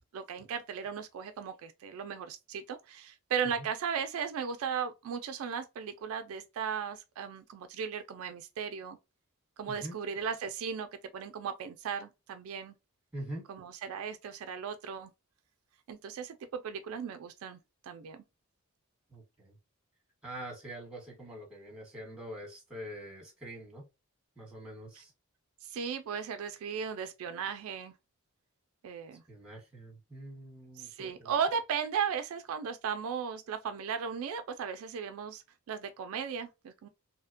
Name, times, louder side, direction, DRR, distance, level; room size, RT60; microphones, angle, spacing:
voice 1, 0.1-9.0 9.6-10.9 11.1-12.8 13.5-15.1 15.9-18.2 25.0-25.1 25.6-27.9 28.8-29.2 30.8-36.9, right 7 dB, 65° right, 0.3 m, -36 dB
voice 2, 13.1-13.4 19.1-19.5 20.2-23.9 24.4-25.1 29.3-31.3, right 1 dB, 5° right, 1.0 m, -44 dB
2.7 x 2.1 x 2.4 m
head